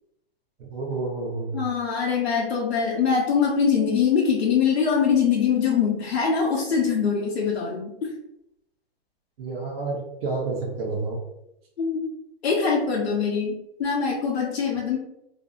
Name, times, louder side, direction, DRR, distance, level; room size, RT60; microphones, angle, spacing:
voice 1, 0.6-1.6 9.4-11.2, right 3 dB, 65° right, -2 dB, 0.8 m, -29 dB
voice 2, 1.5-7.9 11.8-12.1 12.4-15.0, left 6 dB, 90° left, -3 dB, 0.7 m, -23 dB
2.6 x 2.5 x 2.3 m, 0.82 s
hypercardioid pair, 150°, 31 cm